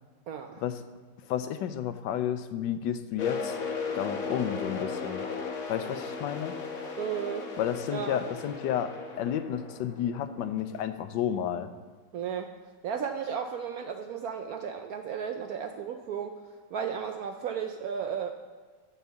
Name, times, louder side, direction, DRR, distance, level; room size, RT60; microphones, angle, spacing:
voice 1, 0.3-0.6 7.0-7.5 7.9-8.2 12.1-12.5 12.8-16.4 16.7-18.3, right 7 dB, 70° right, 5 dB, 0.9 m, -34 dB
voice 2, 1.3-3.6 3.9-5.2 5.7-6.5 7.6-8.9 9.2-11.7, left 9 dB, 80° left, 10 dB, 1.3 m, -31 dB
sound 1, 3.2-10.8, left 4 dB, 55° left, 1.3 m, -36 dB
9.6 x 4.7 x 7.0 m, 1.5 s
omnidirectional pair, 2.0 m